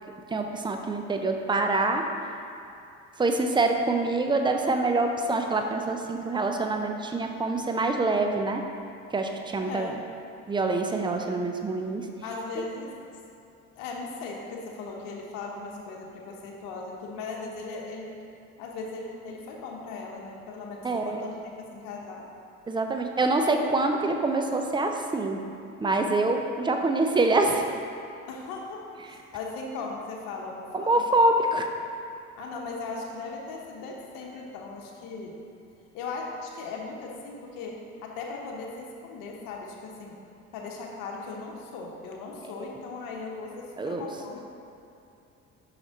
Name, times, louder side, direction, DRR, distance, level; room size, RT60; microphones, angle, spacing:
voice 1, 0.3-2.0 3.2-8.6 9.1-9.9 10.5-12.0 12.6-12.7 20.8-21.2 22.7-25.4 25.8-27.6 30.7-31.7 43.8-44.0, right 2 dB, 15° right, 4 dB, 0.6 m, -25 dB
voice 2, 9.6-10.1 12.2-12.9 13.7-18.1 18.6-22.2 28.3-31.0 32.4-35.4 35.9-40.2 40.5-44.5, left 3 dB, 80° left, -1 dB, 1.0 m, -38 dB
5.9 x 4.8 x 4.1 m, 2.6 s
supercardioid pair, 70°, 33 cm